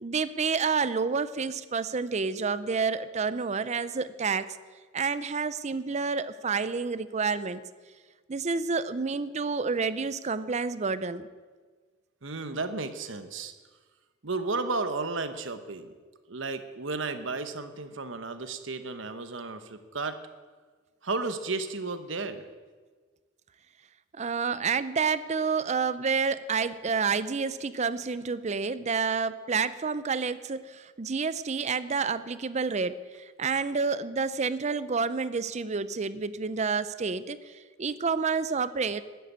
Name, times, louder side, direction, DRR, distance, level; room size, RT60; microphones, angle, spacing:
voice 1, 0.0-4.6 4.9-7.6 8.3-11.3 24.2-39.0, right 5 dB, 35° right, 15 dB, 0.5 m, -29 dB
voice 2, 12.2-13.5 14.2-15.9 16.3-20.2 21.0-22.4, right 3 dB, 65° right, 9 dB, 1.2 m, -33 dB
13.5 x 9.4 x 8.7 m, 1.4 s
head